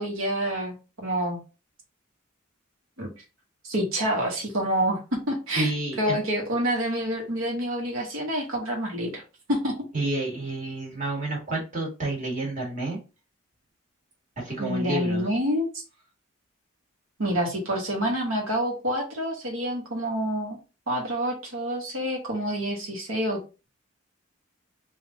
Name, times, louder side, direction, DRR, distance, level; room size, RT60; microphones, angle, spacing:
voice 1, 0.0-1.4 3.0-3.1 3.6-5.7 6.0-9.2 9.5-9.7 14.6-15.7 17.2-20.6 20.9-23.4, equal, 85° right, 0 dB, 1.1 m, -27 dB
voice 2, 5.5-6.2 9.9-13.0 14.4-15.3, right 2 dB, 40° right, -2 dB, 1.5 m, -29 dB
3.5 x 2.4 x 3.7 m, 0.30 s
head